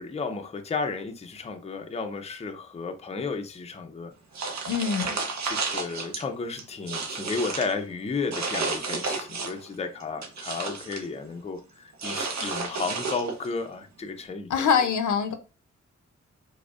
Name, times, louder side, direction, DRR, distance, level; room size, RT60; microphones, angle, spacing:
voice 1, 0.0-4.1 5.0-14.5 14.8-14.9, left 4 dB, 20° left, 0.4 m, -33 dB
sound 1, 4.3-6.2 6.6-7.7 8.3-9.7 10.0-11.1 12.0-13.5, right 4 dB, 65° right, 0.7 m, -31 dB
voice 2, 4.7-5.2 14.5-15.3, left 7 dB, 80° left, 0.5 m, -24 dB
4.9 x 2.0 x 2.3 m
wide cardioid pair, 90°, 30 cm